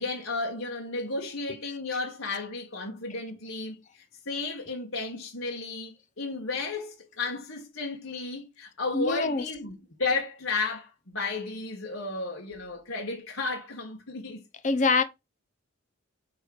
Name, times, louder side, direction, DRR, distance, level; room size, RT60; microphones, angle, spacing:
voice 1, 0.0-14.4 14.8-14.9, left 3 dB, 75° left, 1.7 m, -33 dB
voice 2, 8.9-9.4 14.6-15.0, left 4 dB, 35° left, 0.8 m, -24 dB
9.1 x 3.3 x 6.2 m
head